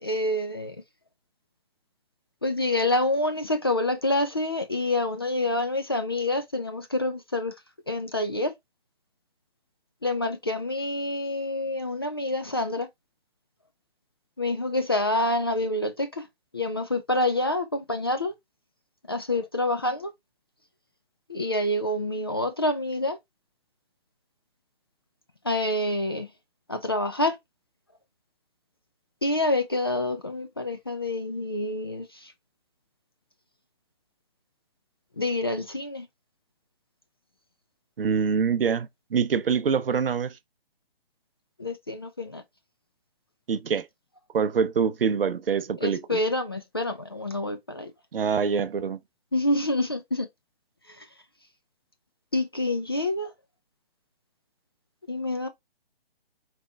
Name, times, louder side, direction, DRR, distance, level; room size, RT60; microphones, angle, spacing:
voice 1, 0.0-0.8 2.4-7.5 7.9-8.5 10.0-12.9 14.4-16.3 16.5-18.3 19.1-20.1 21.3-23.2 25.4-26.3 26.7-27.4 29.2-32.3 35.2-36.1 41.6-42.4 45.8-47.9 49.3-50.3 52.3-53.3 55.1-55.5, left 2 dB, 25° left, 0.4 m, -27 dB
voice 2, 38.0-40.4 43.5-43.9 44.3-46.2 48.1-49.0, right 6 dB, 60° right, 0.6 m, -25 dB
4.4 x 3.3 x 3.3 m
figure-of-eight pair, 145°, 31 cm